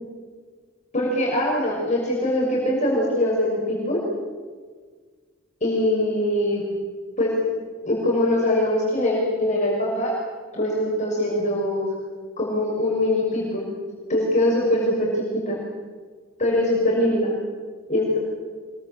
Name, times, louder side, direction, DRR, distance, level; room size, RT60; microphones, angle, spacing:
voice 1, 0.9-4.0 5.6-6.7 7.2-7.4 7.8-10.2 10.5-11.9 12.4-13.7 14.1-15.6 16.4-17.3 17.9-18.2, left 1 dB, 35° left, -4 dB, 6.3 m, -22 dB
26.0 x 23.0 x 7.5 m, 1.5 s
head